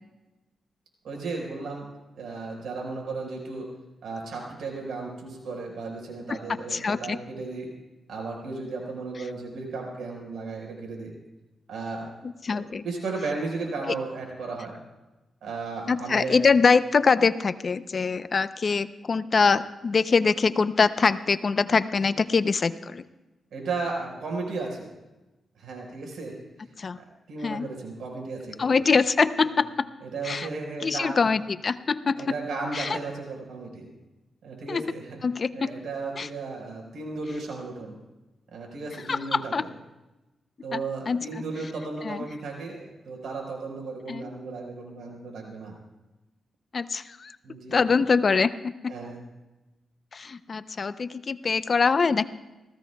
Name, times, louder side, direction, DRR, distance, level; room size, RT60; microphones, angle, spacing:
voice 1, 1.0-1.9 2.2-3.7 4.0-7.7 8.1-11.1 11.7-12.1 12.5-14.8 15.4-16.4 23.5-24.9 25.6-26.3 27.3-28.8 29.5-29.6 30.0-31.2 32.2-33.9 34.4-35.2 35.5-38.0 38.5-39.7 40.6-45.8 47.4-47.8 48.9-49.2, right 3 dB, 85° right, 1 dB, 4.7 m, -35 dB
voice 2, 6.7-7.2 12.2-12.8 15.9-23.0 26.8-27.0 27.4-27.7 28.6-29.9 30.2-30.5 30.8-32.3 32.7-33.0 34.7-34.9 35.2-35.7 36.2-36.3 39.1-39.6 40.7-41.3 42.0-42.2 44.1-44.3 46.7-47.4 47.7-48.9 50.1-52.3, left 5 dB, 50° left, 13 dB, 0.6 m, -24 dB
28.0 x 15.5 x 2.3 m, 1.1 s
cardioid pair, 80°, 0 cm